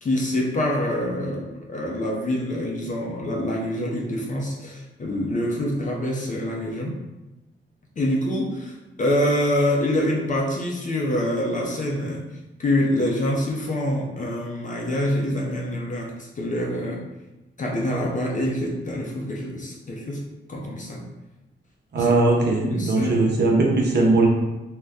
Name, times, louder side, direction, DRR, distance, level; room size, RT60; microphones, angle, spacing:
voice 1, 0.0-7.0 8.0-12.3 12.6-17.0 17.6-21.0 22.0-22.1 22.6-23.3, left 1 dB, 40° left, -1 dB, 0.6 m, -26 dB
voice 2, 21.9-24.3, right 2 dB, 55° right, -1 dB, 0.7 m, -19 dB
2.6 x 2.1 x 3.4 m, 1.0 s
cardioid pair, 80°, 21 cm